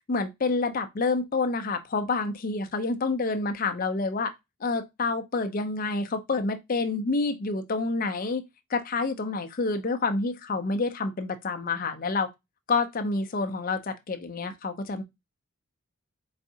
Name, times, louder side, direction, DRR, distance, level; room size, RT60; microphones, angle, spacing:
voice 1, 0.1-4.3 4.6-8.4 8.7-12.3 12.7-15.0, left 3 dB, 40° left, 0.4 m, -28 dB
3.9 x 3.5 x 2.7 m
head